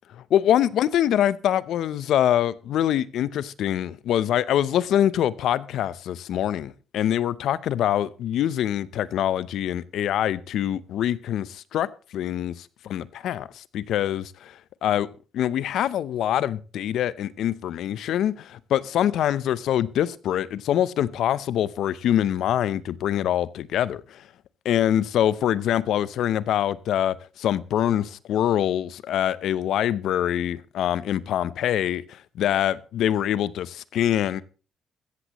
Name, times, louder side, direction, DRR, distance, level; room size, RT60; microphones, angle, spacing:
voice 1, 0.2-11.9 12.1-15.1 15.3-24.2 24.6-34.4, left 11 dB, 75° left, 18 dB, 0.6 m, -24 dB
16.0 x 14.0 x 3.0 m, 0.33 s
cardioid pair, 90°, 0 cm